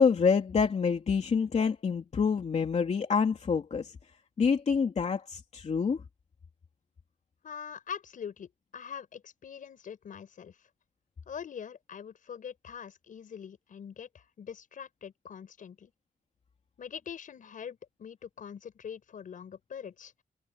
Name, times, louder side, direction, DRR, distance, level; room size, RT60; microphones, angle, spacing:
voice 1, 0.0-3.9 4.4-6.0, left 5 dB, 55° left, 2.8 m, -26 dB
voice 2, 7.4-10.7 11.3-15.9 16.8-20.1, left 7 dB, 75° left, 5.9 m, -43 dB
wide cardioid pair, 120°, 14 cm